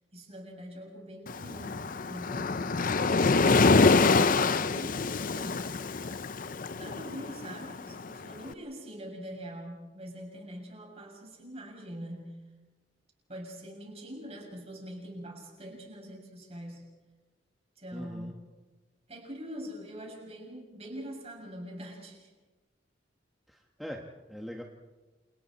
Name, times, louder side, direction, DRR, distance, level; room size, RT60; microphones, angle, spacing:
voice 1, 0.1-5.7 6.7-12.4 13.3-16.8 17.8-18.4 19.1-22.3, equal, 35° right, 0 dB, 6.8 m, -44 dB
Waves surf, 1.3-8.4, left 3 dB, 50° left, 0.7 m, -26 dB
voice 2, 17.9-18.3 23.5-24.6, equal, ahead, 0 dB, 1.4 m, -42 dB
29.5 x 28.5 x 4.3 m, 1.3 s
head